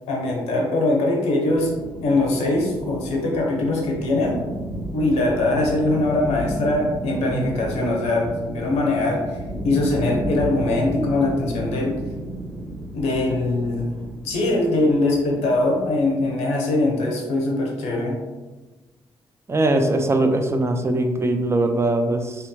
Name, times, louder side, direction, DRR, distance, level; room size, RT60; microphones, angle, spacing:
voice 1, 0.1-1.7 2.0-4.4 4.9-9.2 9.6-11.9 12.9-13.9 14.2-18.2, left 2 dB, 65° left, 0 dB, 0.6 m, -22 dB
sound 1, 1.5-16.3, right 1 dB, 5° left, 0.9 m, -33 dB
voice 2, 19.5-22.4, right 2 dB, 25° right, 5 dB, 0.4 m, -21 dB
3.4 x 2.7 x 2.2 m, 1.2 s
hypercardioid pair, 45°, 12 cm